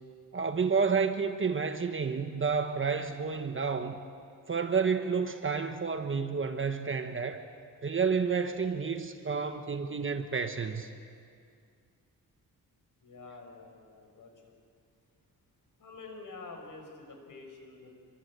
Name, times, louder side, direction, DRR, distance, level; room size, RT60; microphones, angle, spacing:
voice 1, 0.3-4.0 4.5-7.4 7.8-10.9, right 5 dB, 35° right, 7 dB, 1.2 m, -30 dB
voice 2, 13.0-14.5 15.8-17.9, left 3 dB, 55° left, 3 dB, 5.1 m, -48 dB
26.0 x 24.0 x 8.2 m, 2.3 s
wide cardioid pair, 145°, 37 cm